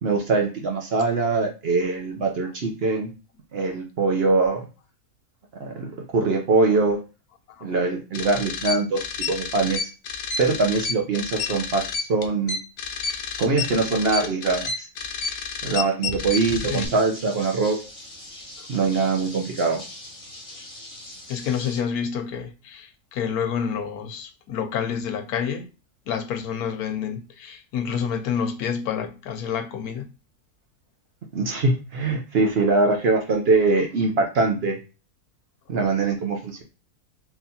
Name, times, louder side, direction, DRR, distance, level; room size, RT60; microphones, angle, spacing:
voice 1, 0.0-3.1 3.5-4.7 5.6-7.0 7.6-9.9 10.4-12.6 13.4-14.9 15.6-17.8 18.7-19.8 31.3-34.8 35.7-36.6, right 3 dB, 55° right, 0.7 m, -23 dB
voice 2, 7.5-7.8 16.7-16.9 18.6-18.7 21.3-25.7 26.1-30.1, left 7 dB, 90° left, 1.2 m, -28 dB
sound 1, 8.1-16.9, left 5 dB, 65° left, 0.8 m, -30 dB
sound 2, 16.4-21.8, left 1 dB, 25° left, 1.3 m, -42 dB
4.0 x 2.9 x 2.7 m
omnidirectional pair, 1.6 m